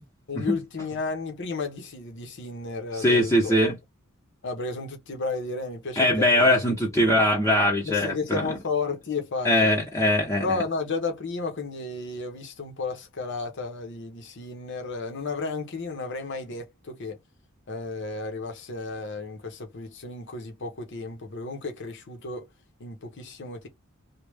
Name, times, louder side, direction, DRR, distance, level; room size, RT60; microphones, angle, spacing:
voice 1, 0.3-3.6 4.4-6.6 7.8-9.8 10.4-17.2 17.7-22.5 22.8-23.7, left 3 dB, 55° left, 0.9 m, -33 dB
voice 2, 3.0-3.7 6.0-8.4 9.4-10.6, left 1 dB, 15° left, 0.9 m, -21 dB
3.1 x 2.3 x 3.4 m
head